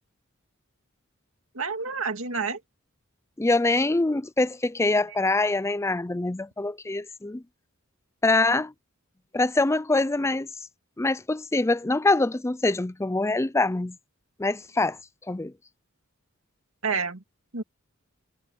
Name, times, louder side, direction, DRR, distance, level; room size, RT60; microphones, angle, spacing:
voice 1, 1.5-2.6 16.8-17.2 17.5-17.6, right 5 dB, 70° right, 2.3 m, -29 dB
voice 2, 3.4-7.4 8.2-8.7 9.3-10.5 11.0-14.0 14.4-15.0 15.3-15.5, left 2 dB, 15° left, 0.4 m, -24 dB
head